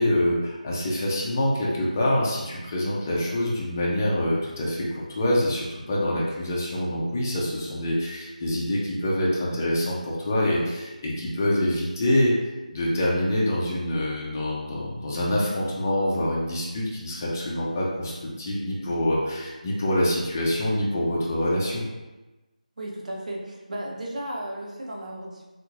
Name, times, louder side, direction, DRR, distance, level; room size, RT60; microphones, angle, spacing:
voice 1, 0.0-12.4 12.7-21.9, left 1 dB, 20° left, -5 dB, 0.5 m, -25 dB
voice 2, 22.8-25.4, right 1 dB, 60° right, -3 dB, 0.8 m, -34 dB
3.6 x 3.0 x 2.5 m, 1.1 s
figure-of-eight pair, 170°, 4 cm